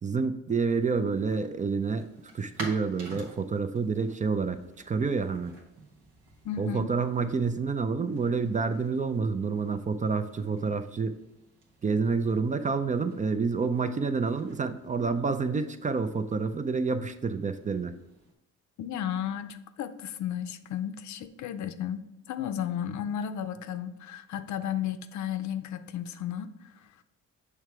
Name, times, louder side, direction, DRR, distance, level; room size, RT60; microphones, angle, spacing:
voice 1, 0.0-2.1 2.3-4.6 4.9-5.6 6.6-11.2 11.8-18.0, right 4 dB, 25° right, 9 dB, 0.4 m, -28 dB
sound 1, 0.7-18.3, right 2 dB, 90° right, 1.5 m, -51 dB
voice 2, 6.4-6.9 18.8-26.5, left 9 dB, 70° left, 10 dB, 0.5 m, -34 dB
6.6 x 3.3 x 4.6 m, 0.93 s
cardioid pair, 90°, 30 cm